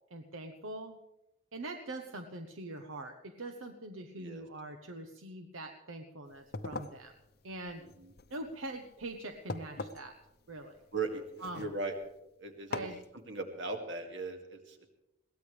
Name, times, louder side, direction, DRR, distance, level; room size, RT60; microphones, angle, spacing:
voice 1, 0.1-1.0 1.5-7.1 7.4-7.8 8.3-10.1 10.5-10.8 11.4-11.7 12.7-13.0, right 2 dB, 80° right, 5 dB, 1.0 m, -43 dB
sound 1, 6.3-12.2 12.7-13.1, left 3 dB, 50° left, 0.7 m, -44 dB
voice 2, 7.8-8.1 10.9-11.2 11.5-12.0 12.4-12.9 13.3-14.9, right 3 dB, 60° right, 4 dB, 2.2 m, -38 dB
22.0 x 17.0 x 3.4 m, 0.90 s
head